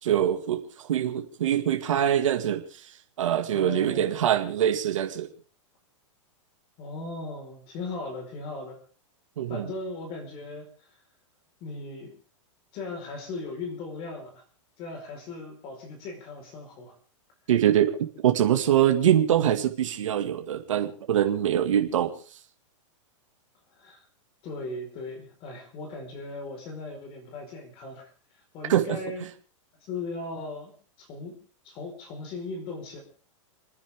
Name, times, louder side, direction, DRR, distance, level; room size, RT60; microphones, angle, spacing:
voice 1, 0.0-2.9 3.2-5.3 9.4-9.7 17.5-22.2 28.7-29.0, right 10 dB, 80° right, 5 dB, 2.2 m, -24 dB
voice 2, 3.5-4.2 6.8-8.8 9.5-10.9 11.6-12.1 12.7-14.4 14.8-16.9 23.7-24.0 24.4-29.3 29.8-31.4 31.6-33.0, left 3 dB, 35° left, 3 dB, 4.9 m, -38 dB
29.5 x 10.0 x 3.7 m, 0.40 s
supercardioid pair, 160°, 16 cm